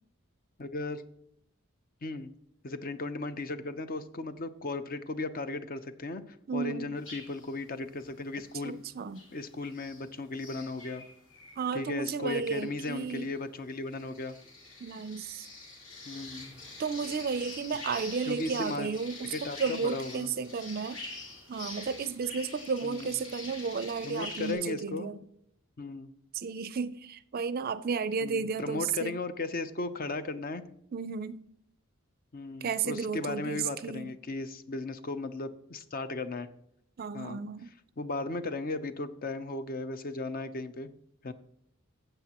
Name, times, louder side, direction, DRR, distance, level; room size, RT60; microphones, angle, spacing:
voice 1, 0.6-1.0 2.0-2.3 2.6-8.8 9.3-11.0 11.7-14.3 16.0-16.6 18.3-18.9 19.3-20.3 22.8-23.2 24.0-25.1 25.8-26.1 28.2-30.6 32.3-36.5 37.1-37.4 38.0-40.9 41.2-41.3, left 3 dB, 45° left, 0.6 m, -36 dB
voice 2, 6.5-6.9 8.6-9.2 11.6-13.3 14.8-15.5 16.8-21.0 21.5-25.2 26.3-29.1 30.9-31.5 32.6-34.2 37.0-37.7, right 5 dB, 45° right, 0.4 m, -33 dB
sound 1, 7.0-7.6 8.0-8.8 9.1-10.1 10.3-24.5, left 2 dB, 70° left, 2.9 m, -46 dB
14.5 x 7.9 x 2.9 m
head